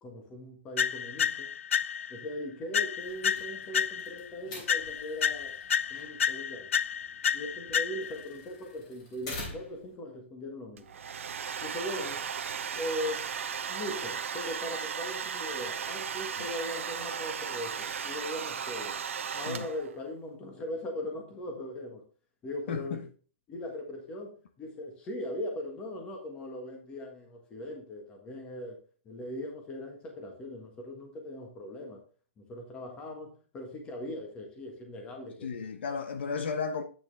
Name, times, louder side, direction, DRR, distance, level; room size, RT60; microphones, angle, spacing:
voice 1, 0.0-1.5 2.1-5.6 5.9-6.7 7.3-10.9 11.6-12.2 12.7-13.2 13.7-18.9 19.3-22.0 22.4-23.0 23.5-28.8 29.0-32.0 32.4-35.5, left 1 dB, 15° left, 1.5 m, -39 dB
sound 1, 0.8-2.3 2.7-4.3 4.7-8.3, left 8 dB, 80° left, 0.4 m, -30 dB
sound 2, 3.0-9.9, left 2 dB, 35° left, 3.2 m, -47 dB
Domestic sounds home sounds, 10.8-20.0, right 7 dB, 85° right, 1.0 m, -36 dB
voice 2, 22.7-23.0 35.4-36.8, left 5 dB, 55° left, 1.1 m, -34 dB
9.0 x 6.0 x 3.4 m
hypercardioid pair, 170°, 7 cm